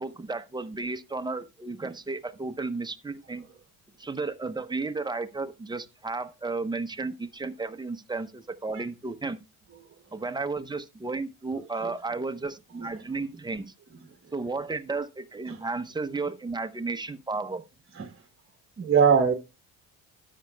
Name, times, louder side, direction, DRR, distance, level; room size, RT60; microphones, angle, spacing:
voice 1, 0.0-3.4 4.0-9.4 10.1-13.7 14.3-17.6, right 3 dB, 10° right, 0.7 m, -33 dB
voice 2, 18.8-19.3, right 6 dB, 30° right, 1.2 m, -22 dB
12.5 x 8.3 x 2.2 m
cardioid pair, 95°, 41 cm